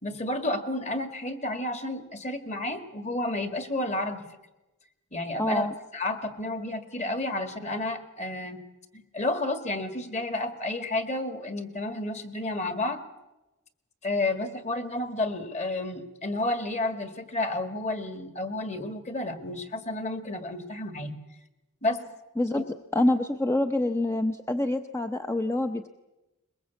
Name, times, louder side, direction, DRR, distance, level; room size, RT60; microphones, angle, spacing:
voice 1, 0.0-4.2 5.1-5.7 5.9-8.6 8.9-13.0 14.0-21.1 21.8-22.0 22.6-22.7, left 2 dB, 30° left, 10 dB, 1.9 m, -31 dB
voice 2, 5.4-5.7 22.4-22.6 22.9-25.9, left 1 dB, 10° left, 6 dB, 0.7 m, -26 dB
22.5 x 21.5 x 8.2 m, 1.0 s
head